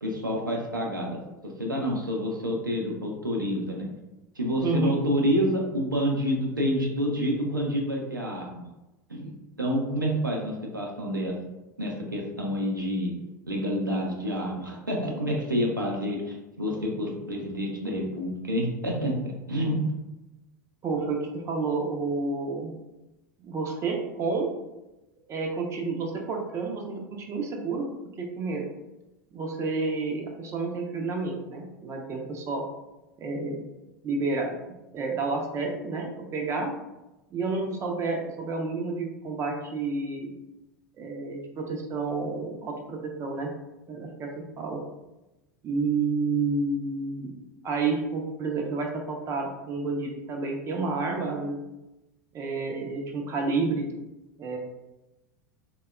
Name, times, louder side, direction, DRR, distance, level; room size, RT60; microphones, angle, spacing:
voice 1, 0.0-3.9 4.4-8.7 9.1-9.3 9.6-11.3 11.8-13.1 13.5-19.8, equal, 90° right, -1 dB, 0.5 m, -28 dB
voice 2, 4.6-4.9 20.8-22.7 23.4-24.5 25.3-27.9 28.2-28.7 29.3-32.6 33.2-33.7 34.0-34.6 34.9-36.7 37.3-40.3 41.0-43.5 43.9-44.8 45.6-47.3 47.6-51.6 52.3-53.9 54.4-54.6, right 3 dB, 25° right, 1 dB, 0.5 m, -30 dB
3.4 x 2.2 x 2.2 m, 1.0 s
figure-of-eight pair, 85°, 11 cm